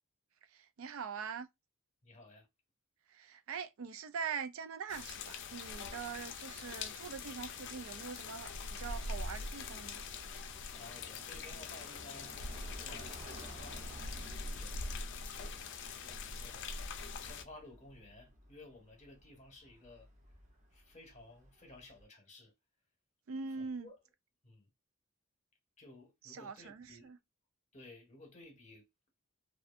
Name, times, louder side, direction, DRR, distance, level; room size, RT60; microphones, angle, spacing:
voice 1, 0.8-1.5 3.1-10.0 23.3-23.9 26.2-27.2, right 6 dB, 70° right, 0.4 m, -43 dB
voice 2, 2.0-2.5 10.7-14.0 14.5-14.8 15.3-16.7 17.2-20.1 20.7-22.5 23.6-23.9 24.4-24.7 25.8-27.2 27.7-28.9, left 2 dB, 35° left, 0.9 m, -56 dB
sound 1, 4.9-17.4, left 4 dB, 60° left, 0.4 m, -43 dB
sound 2, 7.0-22.0, right 1 dB, 35° right, 0.7 m, -56 dB
2.6 x 2.3 x 2.4 m
head